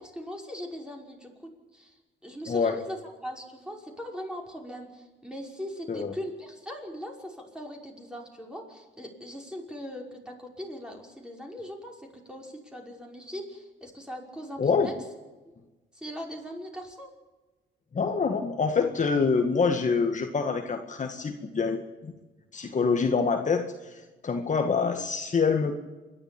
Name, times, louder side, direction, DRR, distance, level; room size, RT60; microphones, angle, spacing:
voice 1, 0.0-3.0 3.2-15.0 15.5-15.6 15.9-17.1, equal, 5° right, 1 dB, 5.5 m, -40 dB
voice 2, 2.5-2.8 5.9-6.1 14.6-14.9 17.9-22.1 22.5-25.7, left 5 dB, 40° left, 4 dB, 1.9 m, -26 dB
27.5 x 12.0 x 9.1 m, 1.2 s
cardioid pair, 90°, 20 cm